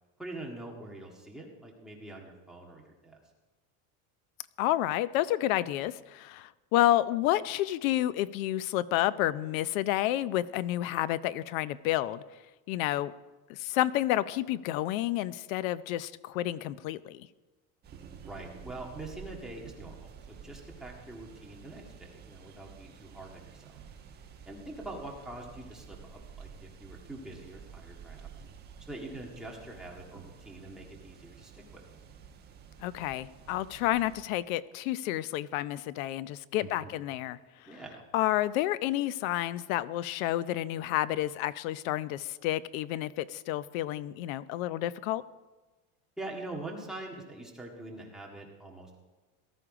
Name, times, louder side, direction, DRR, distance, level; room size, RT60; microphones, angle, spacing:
voice 1, 0.2-3.2 18.3-23.8 24.5-28.3 28.9-31.8 36.6-36.9 37.7-38.0 46.2-49.0, right 2 dB, ahead, -3 dB, 1.8 m, -44 dB
voice 2, 4.6-12.2 12.7-13.1 13.5-17.3 32.8-37.4 38.1-45.2, left 14 dB, 80° left, 17 dB, 0.7 m, -30 dB
sound 1, 17.8-34.2, right 6 dB, 25° right, 1.3 m, -50 dB
18.0 x 13.0 x 4.9 m, 1.2 s
cardioid pair, 170°, 40 cm